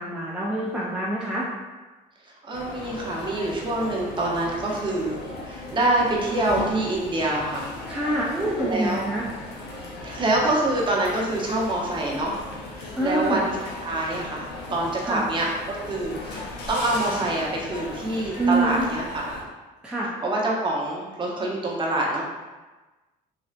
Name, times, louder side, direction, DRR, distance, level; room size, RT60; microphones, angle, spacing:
voice 1, 0.0-1.5 7.9-9.3 13.0-13.4 15.0-15.3 18.4-18.9 19.8-20.1, right 2 dB, 5° right, -6 dB, 0.4 m, -26 dB
voice 2, 2.2-7.7 8.6-9.1 10.0-12.4 12.7-13.6 13.8-19.3 20.2-22.2, right 1 dB, 30° right, -3 dB, 0.7 m, -26 dB
sound 1, 2.5-19.4, left 2 dB, 75° left, 0.7 m, -37 dB
3.2 x 2.7 x 2.4 m, 1.2 s
cardioid pair, 110°, 17 cm